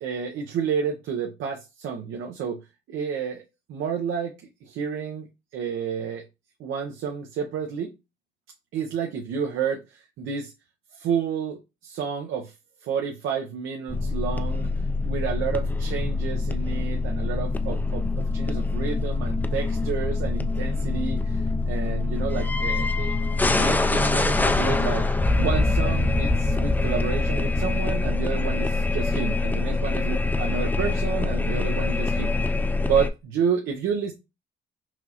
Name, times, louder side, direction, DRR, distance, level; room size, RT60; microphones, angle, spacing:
voice 1, 0.0-2.6 2.9-3.4 3.7-4.3 4.6-5.3 5.5-6.2 6.6-7.9 8.7-10.5 10.9-12.5 12.8-14.7 15.0-23.1 23.4-25.1 25.4-32.3 32.8-34.1, right 7 dB, 80° right, 3 dB, 0.7 m, -30 dB
sound 1, 13.9-33.1, left 3 dB, 10° left, 0.4 m, -24 dB
5.9 x 2.4 x 2.9 m, 0.25 s
cardioid pair, 90°, 20 cm